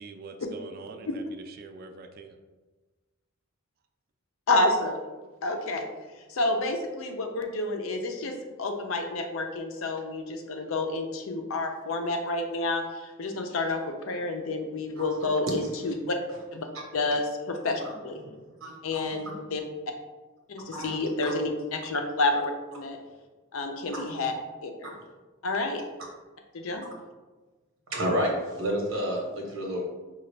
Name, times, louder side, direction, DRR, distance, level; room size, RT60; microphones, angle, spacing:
voice 1, 0.0-2.4, right 4 dB, 45° right, 6 dB, 0.3 m, -44 dB
voice 2, 4.5-5.0 5.4-5.9 6.2-16.2 16.5-16.7 16.9-18.2 18.8-19.6 20.5-23.0 23.5-24.3 24.6-24.9 25.4-25.8 26.5-26.8, left 2 dB, 85° left, 4 dB, 0.5 m, -29 dB
voice 3, 18.6-19.1 20.7-20.9 21.2-21.3 27.9-29.8, equal, 80° right, -1 dB, 1.0 m, -30 dB
4.9 x 2.4 x 3.3 m, 1.2 s
head